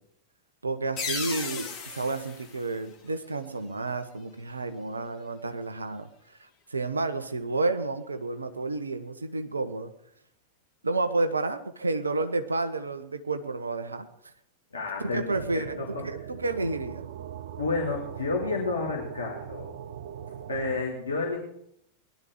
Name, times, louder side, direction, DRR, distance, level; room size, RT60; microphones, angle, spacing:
voice 1, 0.6-9.9 10.8-14.1 15.0-17.0, right 3 dB, 80° right, 10 dB, 1.1 m, -31 dB
sound 1, 1.0-3.5, left 5 dB, 30° left, 4.8 m, -36 dB
voice 2, 14.7-16.0 17.6-19.7 20.5-21.4, left 3 dB, 70° left, -3 dB, 3.1 m, -30 dB
sound 2, 15.3-20.8, right 9 dB, 60° right, 0.8 m, -40 dB
19.5 x 11.5 x 4.9 m, 0.74 s
figure-of-eight pair, 90°, 0 cm